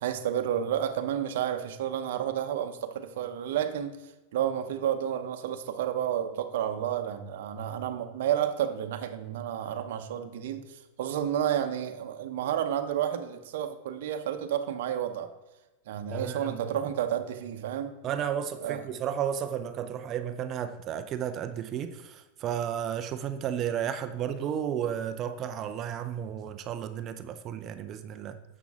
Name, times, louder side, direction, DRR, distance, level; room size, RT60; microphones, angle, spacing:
voice 1, 0.0-3.9 4.3-15.3 15.9-17.9 18.6-18.8, right 10 dB, 70° right, 0.8 m, -31 dB
voice 2, 16.1-16.6 18.0-28.3, right 9 dB, 35° right, 0.5 m, -33 dB
7.4 x 6.0 x 3.6 m
hypercardioid pair, 130°, 0 cm